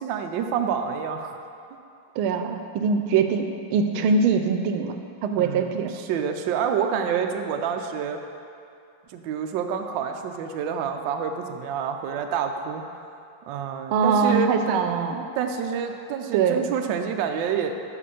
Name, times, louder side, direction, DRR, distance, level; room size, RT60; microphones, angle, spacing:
voice 1, 0.0-1.4 5.4-8.2 9.1-13.1 13.5-14.8 15.3-17.7, right 7 dB, 75° right, 5 dB, 1.2 m, -28 dB
voice 2, 2.2-5.9 13.9-15.2 16.3-16.7, right 5 dB, 90° right, 7 dB, 1.5 m, -23 dB
7.6 x 5.0 x 6.8 m, 2.6 s
omnidirectional pair, 2.2 m